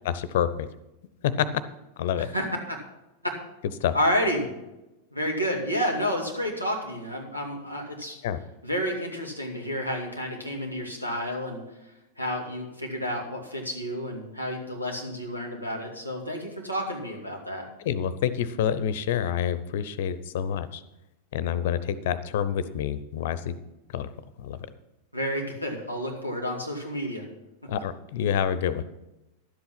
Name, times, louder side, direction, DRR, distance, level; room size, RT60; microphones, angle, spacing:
voice 1, 0.0-0.5 1.2-1.5 2.0-2.3 3.8-3.9 8.2-8.4 17.9-20.7 21.3-23.5 23.9-24.1 24.5-24.6 27.7-28.8, left 9 dB, 55° left, 15 dB, 0.7 m, -27 dB
voice 2, 2.2-2.8 3.2-3.3 3.9-4.5 5.1-8.2 8.6-11.6 12.2-17.7 25.1-27.3, equal, 90° right, 0 dB, 2.3 m, -30 dB
11.5 x 8.0 x 6.0 m, 0.96 s
figure-of-eight pair, 90°, 0 cm